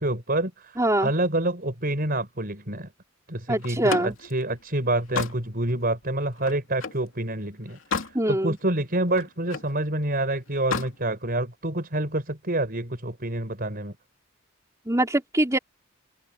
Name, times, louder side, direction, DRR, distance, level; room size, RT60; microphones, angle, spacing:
voice 1, 0.0-2.9 3.3-13.9, right 1 dB, 45° right, 5.1 m, -27 dB
voice 2, 0.8-1.1 3.5-4.1 8.1-8.6 14.9-15.6, right 1 dB, 15° right, 3.5 m, -23 dB
Slam, 3.6-7.1 7.5-8.2 8.6-9.8 10.5-11.0, left 4 dB, 60° left, 2.9 m, -33 dB
head